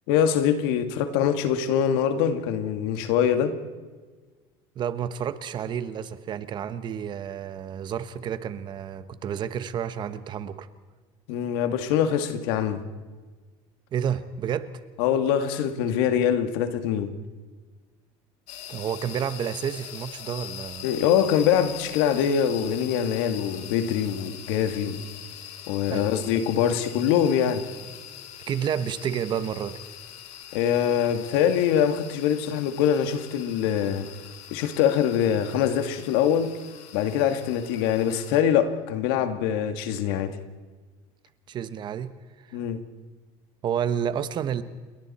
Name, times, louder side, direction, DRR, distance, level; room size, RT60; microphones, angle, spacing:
voice 1, 0.1-3.6 11.3-12.8 15.0-17.1 20.8-25.0 25.7-27.6 30.5-34.1 34.5-36.5 36.9-40.4 42.5-42.8, left 9 dB, 80° left, 9 dB, 2.0 m, -24 dB
voice 2, 4.7-10.7 13.9-14.8 18.7-20.9 25.9-26.0 28.5-29.8 41.5-42.1 42.5-42.6 43.6-44.6, right 8 dB, 35° right, 13 dB, 1.1 m, -30 dB
sound 1, 18.5-38.4, left 11 dB, 65° left, 2.3 m, -42 dB
29.5 x 22.0 x 4.3 m, 1.4 s
cardioid pair, 145°, 12 cm